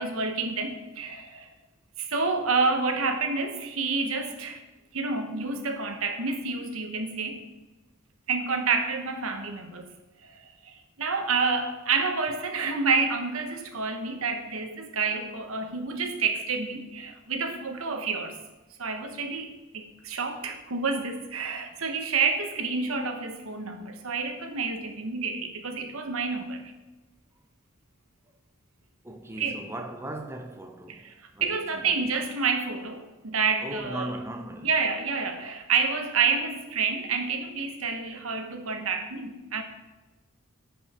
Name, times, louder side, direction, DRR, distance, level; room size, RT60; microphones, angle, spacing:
voice 1, 0.0-1.5 2.0-4.6 4.9-7.4 8.3-9.9 10.2-18.4 18.8-26.6 29.4-29.6 30.9-31.1 31.4-34.1 34.6-39.6, right 4 dB, 85° right, 1.1 m, -29 dB
voice 2, 29.0-31.8 33.6-34.7, right 1 dB, 10° right, 0.7 m, -38 dB
10.5 x 5.7 x 4.3 m
head